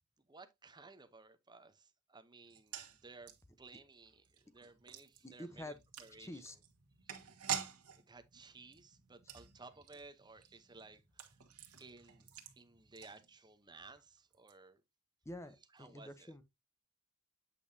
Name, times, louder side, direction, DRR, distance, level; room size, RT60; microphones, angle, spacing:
voice 1, 0.2-6.6 7.0-7.7 8.0-11.4 11.8-12.3 12.6-14.8 15.7-16.3, right 3 dB, 20° right, 0.8 m, -57 dB
sound 1, 2.5-13.7 13.9-14.0 14.3-14.5, right 9 dB, 90° right, 1.5 m, -48 dB
voice 2, 5.2-5.7 6.2-6.5 15.2-16.4, left 1 dB, 10° left, 0.8 m, -48 dB
8.4 x 5.3 x 2.7 m
head